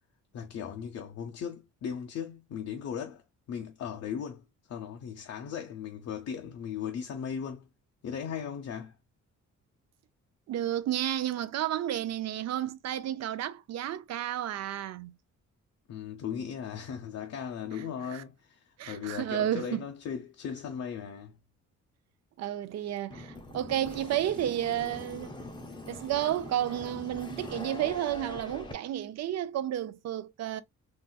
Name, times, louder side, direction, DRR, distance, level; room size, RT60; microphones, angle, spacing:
voice 1, 0.3-3.2 3.5-7.7 8.0-8.9 15.9-21.3, left 8 dB, 55° left, 0.6 m, -37 dB
voice 2, 10.5-15.1 18.1-18.2 18.8-19.8 22.4-25.4 25.9-30.6, right 12 dB, 60° right, 0.5 m, -32 dB
sound 1, 23.1-28.7, left 2 dB, 15° left, 0.6 m, -43 dB
3.9 x 2.4 x 2.2 m
cardioid pair, 145°, 30 cm